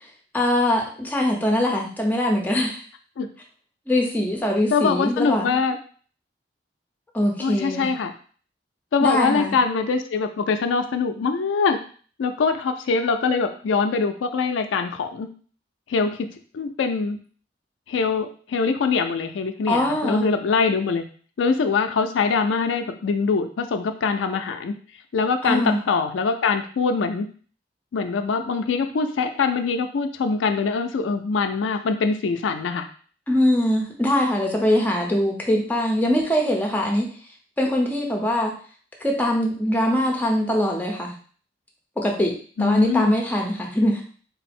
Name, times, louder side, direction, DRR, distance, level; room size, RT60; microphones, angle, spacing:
voice 1, 0.3-2.8 3.9-5.6 7.1-7.9 9.0-9.6 19.7-20.3 25.4-25.8 33.3-37.1 37.6-38.5 39.0-41.2 42.0-42.3 42.6-44.0, left 1 dB, 10° left, 0 dB, 0.7 m, -22 dB
voice 2, 4.7-5.8 7.4-8.1 8.9-11.8 12.2-15.3 15.9-16.3 16.5-17.2 17.9-21.0 21.4-24.7 25.1-27.3 27.9-32.9 42.6-43.1, left 4 dB, 85° left, 6 dB, 0.4 m, -23 dB
3.8 x 2.0 x 4.2 m, 0.43 s
head